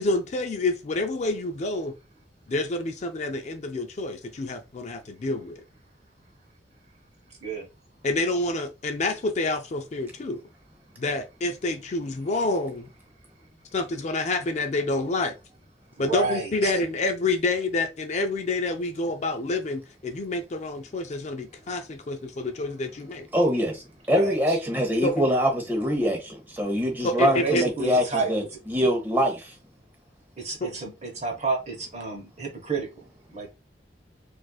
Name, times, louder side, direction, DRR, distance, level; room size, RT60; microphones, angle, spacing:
voice 1, 0.0-1.9 2.5-5.6 8.0-10.4 11.0-12.9 13.7-15.3 16.0-23.3 25.0-25.3 27.0-27.6 30.6-30.7, left 2 dB, 40° left, 0.4 m, -28 dB
voice 2, 16.0-16.7 24.2-24.6 27.2-28.3 30.4-32.9 33.3-33.5, right 4 dB, 40° right, 1.0 m, -30 dB
voice 3, 23.3-29.5, equal, 10° right, 1.0 m, -24 dB
4.2 x 2.5 x 2.3 m
head